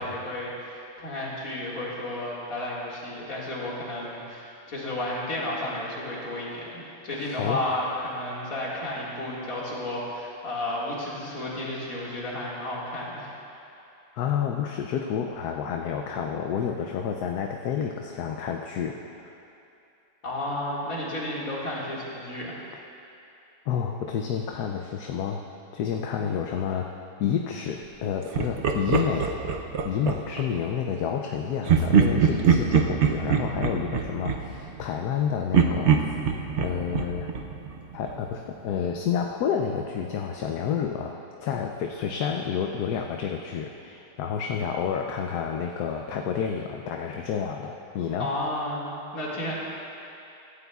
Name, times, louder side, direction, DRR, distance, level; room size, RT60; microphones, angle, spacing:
voice 1, 0.0-13.3 20.2-22.6 48.2-49.5, left 1 dB, 55° left, -6 dB, 2.5 m, -32 dB
voice 2, 7.1-7.6 14.1-19.3 23.7-25.4 25.7-26.9 27.2-29.4 29.8-36.0 36.6-37.3 37.9-48.3, left 7 dB, 70° left, 2 dB, 1.1 m, -29 dB
Laughter, 28.3-30.5 31.7-35.2 35.5-38.3, right 6 dB, 60° right, 0.7 m, -24 dB
16.5 x 13.5 x 2.4 m, 2.7 s
omnidirectional pair, 1.8 m